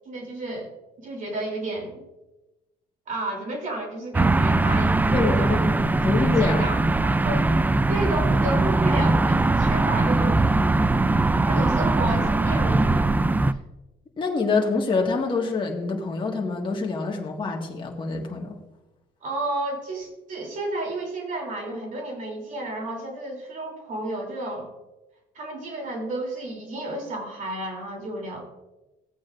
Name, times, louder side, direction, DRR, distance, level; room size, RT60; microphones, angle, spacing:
voice 1, 0.0-0.7 1.0-2.0 3.1-5.9 6.4-7.4 7.9-10.4 11.4-13.2 19.2-24.7 25.3-28.4, right 2 dB, 50° right, 0 dB, 3.1 m, -32 dB
sound 1, 4.1-13.5, right 2 dB, 10° right, 0.3 m, -21 dB
voice 2, 5.1-5.6 6.0-6.7 14.2-18.6, left 4 dB, 30° left, 0 dB, 1.7 m, -26 dB
16.5 x 8.5 x 2.5 m, 1.0 s
cardioid pair, 110°, 17 cm